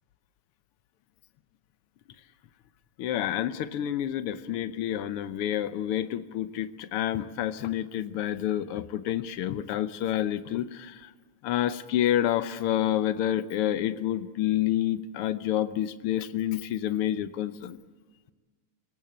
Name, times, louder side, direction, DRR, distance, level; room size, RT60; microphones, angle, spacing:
voice 1, 3.0-11.1 11.4-17.8, left 11 dB, 75° left, 13 dB, 1.3 m, -28 dB
28.0 x 17.0 x 8.8 m, 1.4 s
omnidirectional pair, 3.6 m